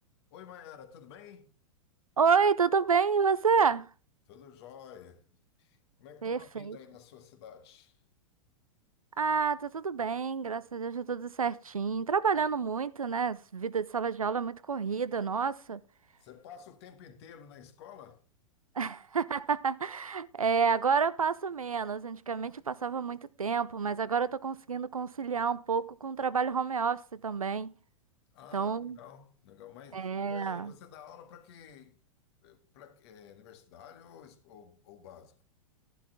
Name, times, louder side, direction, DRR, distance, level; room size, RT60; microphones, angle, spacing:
voice 1, 0.3-1.5 4.3-5.3 5.6-8.0 16.2-18.2 28.3-32.0 32.4-35.4, left 8 dB, 50° left, 1.9 m, -51 dB
voice 2, 2.2-3.9 6.2-6.8 9.2-15.8 18.8-27.7 28.5-29.0 29.9-30.7, right 5 dB, 85° right, 0.6 m, -29 dB
12.0 x 11.0 x 3.6 m
figure-of-eight pair, 100°, 18 cm